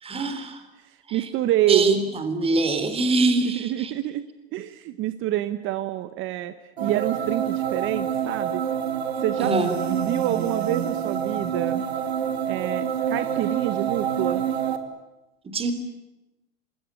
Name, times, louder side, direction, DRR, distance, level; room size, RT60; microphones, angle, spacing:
voice 1, 0.0-0.6 1.1-1.2 1.7-3.9 9.4-9.7 15.4-15.7, right 3 dB, 20° right, 9 dB, 3.8 m, -23 dB
voice 2, 0.8-1.9 3.5-4.2 4.5-8.6 9.2-9.5 9.9-11.8 12.5-14.5, right 14 dB, 40° right, 12 dB, 1.3 m, -27 dB
sound 1, 6.8-14.8, right 8 dB, 85° right, 2.9 m, -27 dB
27.5 x 21.0 x 9.9 m, 0.97 s
hypercardioid pair, 110°, 31 cm